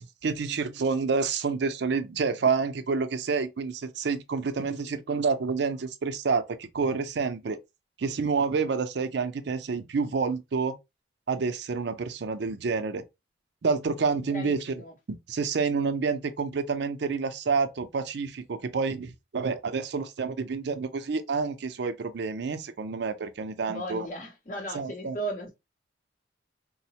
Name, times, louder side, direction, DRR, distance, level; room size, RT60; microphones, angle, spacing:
voice 1, 0.2-7.6 8.0-10.8 11.3-13.0 13.6-14.6 15.1-24.1 24.7-25.1, right 5 dB, 65° right, 0.5 m, -28 dB
voice 2, 14.3-14.9 23.7-25.5, right 1 dB, 45° left, 0.7 m, -36 dB
3.8 x 2.1 x 2.7 m
head